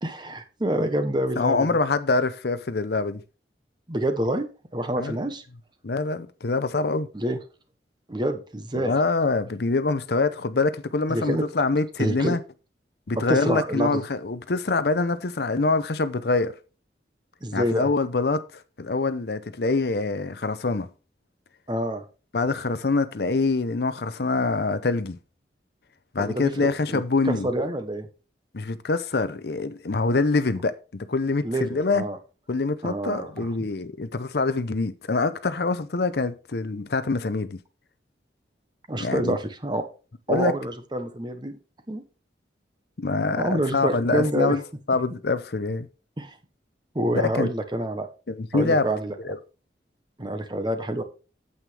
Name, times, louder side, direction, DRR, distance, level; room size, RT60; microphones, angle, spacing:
voice 1, 0.0-1.8 3.9-4.5 4.7-5.4 7.1-7.4 8.1-8.9 11.1-11.4 12.0-12.4 13.2-14.0 17.4-17.9 21.7-22.0 26.2-28.1 31.4-32.2 32.8-33.7 38.9-39.9 40.3-41.6 41.9-42.0 43.3-44.5 46.2-46.3 46.9-48.1 48.5-49.1 50.2-51.0, right 1 dB, 25° right, 1.0 m, -27 dB
voice 2, 1.4-3.2 5.0-5.2 5.8-7.1 8.7-12.4 13.1-16.5 17.5-18.4 18.8-20.9 22.3-25.2 26.1-27.5 28.5-32.1 32.5-37.6 39.0-39.4 40.3-40.5 43.0-44.6 44.9-45.9 47.1-47.5 48.3-48.9 49.2-49.4, left 3 dB, 60° left, 0.6 m, -25 dB
9.1 x 7.9 x 3.4 m
head